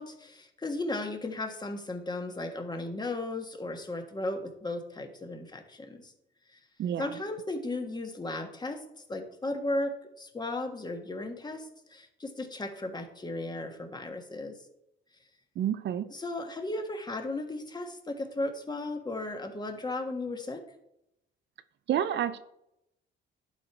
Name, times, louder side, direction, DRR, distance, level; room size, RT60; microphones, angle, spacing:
voice 1, 0.0-6.1 6.5-6.6 7.0-8.8 9.1-14.6 16.1-20.6, left 2 dB, 20° left, 5 dB, 1.4 m, -35 dB
voice 2, 6.8-7.2 15.6-16.1 21.9-22.4, right 10 dB, 65° right, 12 dB, 0.6 m, -29 dB
11.5 x 4.6 x 4.5 m, 0.81 s
cardioid pair, 90°, 20 cm